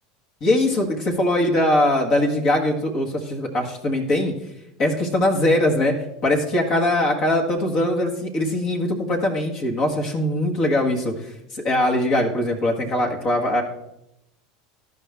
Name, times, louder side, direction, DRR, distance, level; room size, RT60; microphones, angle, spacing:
voice 1, 0.4-4.3 4.8-5.9 6.2-13.6, left 1 dB, 45° left, 1 dB, 1.6 m, -21 dB
13.5 x 5.3 x 3.5 m, 0.84 s
figure-of-eight pair, 75°, 0 cm